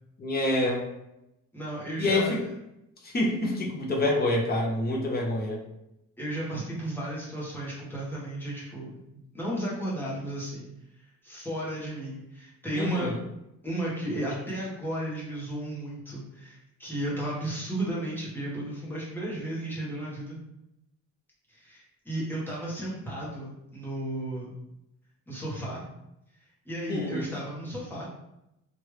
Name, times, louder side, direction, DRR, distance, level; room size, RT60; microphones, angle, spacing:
voice 1, 0.2-0.8 2.0-2.4 3.0-5.6 12.8-13.2 26.9-27.3, left 1 dB, 30° left, -1 dB, 0.7 m, -27 dB
voice 2, 1.5-2.4 6.2-10.7 11.0-13.1 13.6-20.4 21.5-24.5 25.3-25.8 26.6-28.1, right 1 dB, 5° left, -7 dB, 1.1 m, -34 dB
3.1 x 2.5 x 3.2 m, 0.87 s
wide cardioid pair, 140°, 32 cm